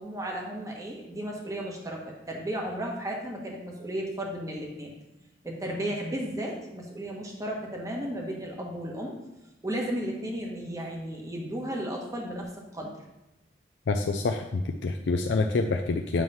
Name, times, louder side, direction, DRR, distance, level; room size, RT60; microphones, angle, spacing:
voice 1, 0.0-4.9 5.4-9.1 9.6-13.0, right 1 dB, 20° right, -1 dB, 1.2 m, -34 dB
voice 2, 13.9-16.2, left 3 dB, 85° left, 3 dB, 0.4 m, -27 dB
7.5 x 3.1 x 5.4 m, 0.95 s
head